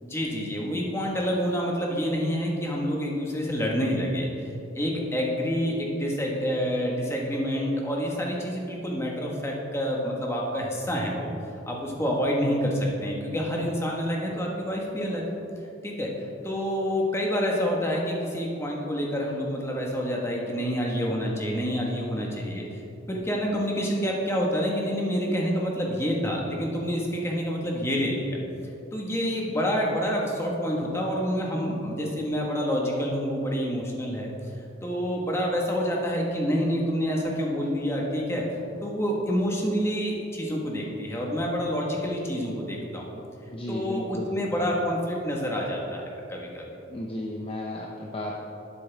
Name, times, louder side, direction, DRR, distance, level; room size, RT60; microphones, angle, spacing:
voice 1, 0.0-11.3 11.7-15.2 15.8-16.1 16.4-22.8 23.1-28.4 28.9-34.3 34.8-38.4 38.8-43.2 43.7-46.7, equal, 15° left, -2 dB, 1.5 m, -28 dB
voice 2, 43.5-44.3 46.9-48.4, left 1 dB, 30° left, -1 dB, 0.7 m, -34 dB
11.5 x 9.8 x 3.5 m, 2.8 s
head